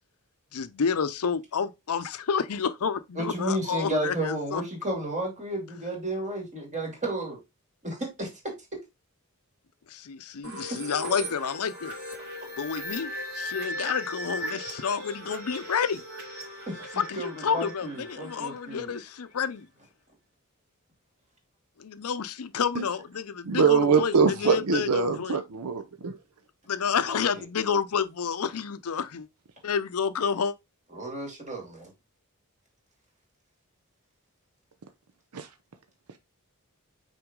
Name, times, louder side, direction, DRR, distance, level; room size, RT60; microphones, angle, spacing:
voice 1, 0.5-4.6 9.9-11.9 12.6-16.0 16.9-19.7 21.8-25.4 26.7-29.3 29.6-30.5, left 6 dB, 80° left, 0.6 m, -29 dB
voice 2, 3.2-7.4 7.8-8.3 10.4-10.6 16.7-18.9 27.1-27.4 30.9-31.9, right 1 dB, 35° right, 2.8 m, -33 dB
sound 1, 10.4-19.0, equal, 65° right, 3.1 m, -38 dB
voice 3, 23.4-26.2 35.3-35.5, right 5 dB, 85° right, 0.6 m, -23 dB
5.9 x 4.4 x 3.7 m
head